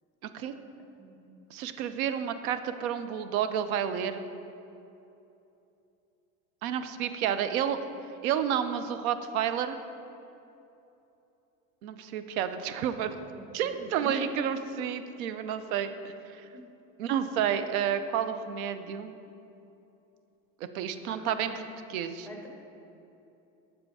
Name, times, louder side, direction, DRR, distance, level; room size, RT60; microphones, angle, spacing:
voice 1, 1.0-1.3 13.4-13.5 14.0-14.3 16.5-16.7 21.1-21.7 22.2-22.5, equal, ahead, 0 dB, 1.4 m, -42 dB
voice 2, 1.5-4.2 6.6-7.8 8.2-9.8 11.8-13.2 13.5-15.9 16.3-16.4 17.0-19.1 20.7-21.5 21.9-22.5, right 9 dB, 90° right, 10 dB, 0.6 m, -30 dB
6.9 x 5.2 x 4.8 m, 2.8 s
supercardioid pair, 100°, 41 cm